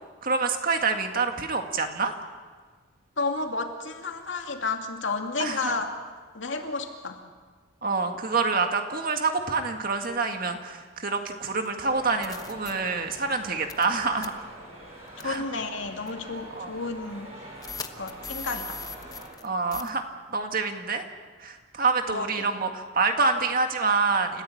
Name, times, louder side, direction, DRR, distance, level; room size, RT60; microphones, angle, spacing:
voice 1, 0.2-2.1 5.4-5.8 7.8-14.5 15.2-15.4 16.5-16.7 19.4-21.0 21.4-24.4, right 4 dB, 45° right, 5 dB, 1.9 m, -27 dB
voice 2, 3.2-5.9 6.3-7.2 15.2-17.3 18.0-18.8 22.1-22.5, left 3 dB, 65° left, 3 dB, 2.6 m, -31 dB
sound 1, 11.6-11.7 12.2-12.7 13.7-13.9 14.2-14.3 15.2-15.4 16.1-16.2 17.6-19.5 19.7-19.9, left 4 dB, 20° left, 0.9 m, -38 dB
sound 2, 11.8-19.3, right 1 dB, 30° right, 7.6 m, -45 dB
29.5 x 15.0 x 8.7 m, 1.5 s
head